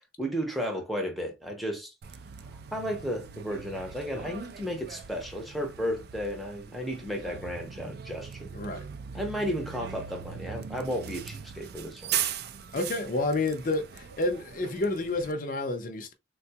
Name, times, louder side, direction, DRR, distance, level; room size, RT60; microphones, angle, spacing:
voice 1, 0.2-1.9 2.7-8.5 9.1-12.2, equal, ahead, 0.7 m, -33 dB
Bus, 2.0-15.3, right 8 dB, 50° right, 0.3 m, -39 dB
voice 2, 8.5-8.8 12.7-16.1, left 2 dB, 40° left, 0.6 m, -30 dB
3.7 x 2.3 x 2.7 m
head